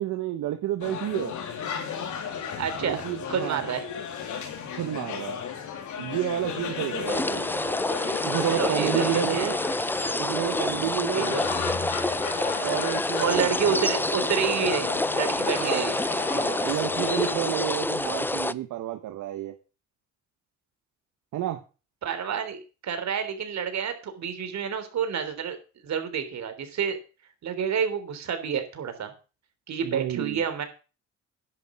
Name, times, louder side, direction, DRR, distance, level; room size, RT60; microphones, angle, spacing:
voice 1, 0.0-1.3 2.8-3.7 4.7-5.4 6.0-7.4 8.2-9.6 10.2-11.4 12.6-13.5 15.6-15.9 16.3-19.5 21.3-21.6 29.8-30.4, right 12 dB, 80° right, 6 dB, 1.5 m, -30 dB
sound 1, 0.8-17.4, left 7 dB, 75° left, 3.8 m, -35 dB
voice 2, 2.6-3.0 3.3-3.8 8.5-9.5 11.1-11.5 13.2-16.0 22.0-25.6 25.8-27.0 27.4-29.1 29.7-30.6, right 7 dB, 65° right, 8 dB, 3.6 m, -29 dB
sound 2, 7.1-18.5, left 1 dB, 5° left, 0.6 m, -27 dB
10.5 x 7.9 x 7.5 m, 0.34 s
cardioid pair, 90°, 30 cm